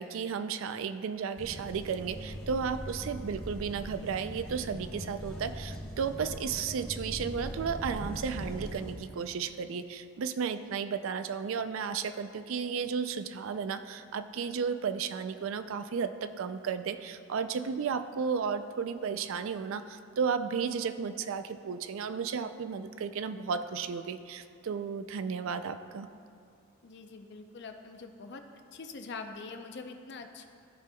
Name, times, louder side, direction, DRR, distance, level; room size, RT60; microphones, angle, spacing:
voice 1, 0.0-26.1, right 6 dB, 65° right, 11 dB, 0.3 m, -33 dB
sound 1, 1.4-8.9, equal, 5° left, 1.3 m, -41 dB
voice 2, 26.8-28.4 28.7-30.5, left 4 dB, 50° left, 6 dB, 0.5 m, -44 dB
15.0 x 5.2 x 2.2 m, 2.4 s
head